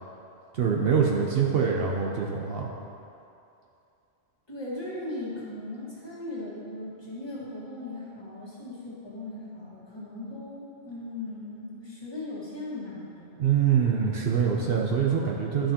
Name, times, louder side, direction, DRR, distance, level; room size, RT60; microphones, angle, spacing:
voice 1, 0.5-2.7 13.4-15.7, right 7 dB, 60° right, -1 dB, 0.8 m, -24 dB
voice 2, 4.5-13.4, left 2 dB, 20° left, -8 dB, 1.7 m, -38 dB
11.0 x 5.7 x 2.9 m, 2.7 s
omnidirectional pair, 1.2 m